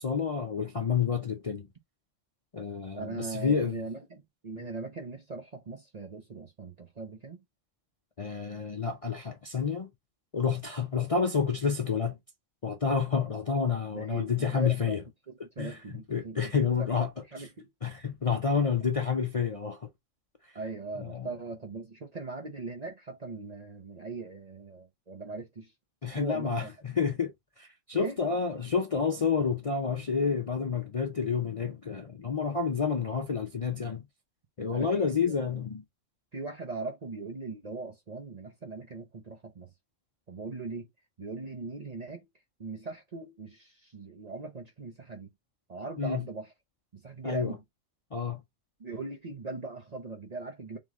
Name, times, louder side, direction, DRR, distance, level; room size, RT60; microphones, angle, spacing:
voice 1, 0.0-1.7 2.5-3.8 8.2-9.9 10.3-12.2 12.6-15.0 15.6-15.8 16.1-17.1 17.8-19.9 21.0-21.3 26.0-34.0 34.6-35.8 46.0-46.3 47.2-47.6 48.1-48.4, left 6 dB, 40° left, 0.5 m, -29 dB
voice 2, 2.9-7.4 13.9-15.0 15.3-16.4 16.8-17.0 17.3-17.7 20.5-25.7 26.2-26.7 27.9-28.1 34.7-35.3 36.3-39.7 40.3-40.9 41.2-42.2 42.6-45.3 45.7-46.5 46.9-47.6 48.8-50.8, right 3 dB, 40° right, 0.7 m, -40 dB
3.7 x 3.2 x 3.6 m
omnidirectional pair, 1.3 m